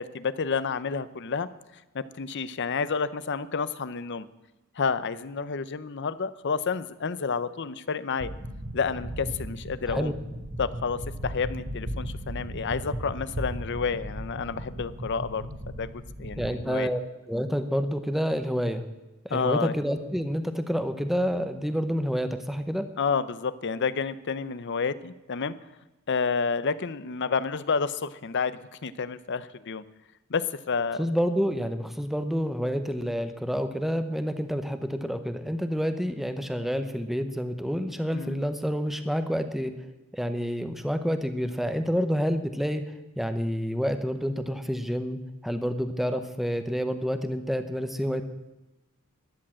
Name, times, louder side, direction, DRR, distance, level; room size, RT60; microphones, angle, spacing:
voice 1, 0.0-1.5 1.9-4.3 4.8-8.3 8.7-10.1 10.6-15.5 15.8-15.9 16.2-16.9 19.3-19.7 23.0-25.5 26.1-29.8 30.3-31.1 38.1-38.5, left 5 dB, 55° left, 15 dB, 0.6 m, -30 dB
sound 1, 8.2-16.6, equal, 40° right, 1.6 m, -36 dB
voice 2, 16.4-17.0 17.3-18.8 19.2-22.9 31.0-39.7 40.1-42.8 43.2-48.2, equal, ahead, 8 dB, 0.8 m, -28 dB
13.0 x 10.5 x 7.6 m, 1.0 s
head